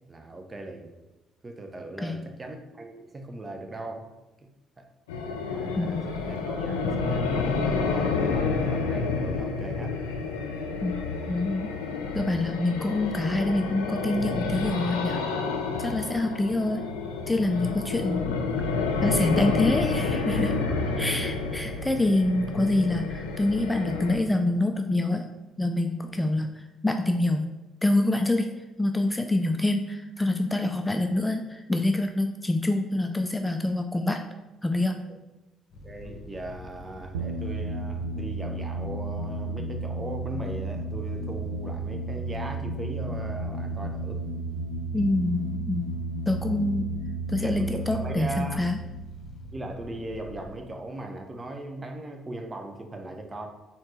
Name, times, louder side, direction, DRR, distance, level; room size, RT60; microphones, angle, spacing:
voice 1, 0.1-0.9 1.4-4.1 4.8-4.9 5.4-10.0 20.7-21.1 26.1-26.2 35.8-44.2 47.4-48.6 49.5-53.5, right 2 dB, 30° right, 4 dB, 0.7 m, -38 dB
sound 1, 5.1-24.2, left 4 dB, 85° left, 0.4 m, -29 dB
voice 2, 11.3-11.8 12.1-15.3 15.8-16.8 17.3-18.3 19.0-20.6 21.0-25.2 25.6-27.5 27.8-34.2 34.6-35.0 44.9-45.8 46.3-46.9 47.3-48.8, left 2 dB, 10° left, 6 dB, 0.4 m, -26 dB
sound 2, 35.7-50.6, left 2 dB, 55° left, 0.9 m, -46 dB
sound 3, 37.1-50.4, right 2 dB, 90° right, 0.3 m, -33 dB
4.3 x 3.7 x 3.1 m, 1.1 s
hypercardioid pair, 55°, 0 cm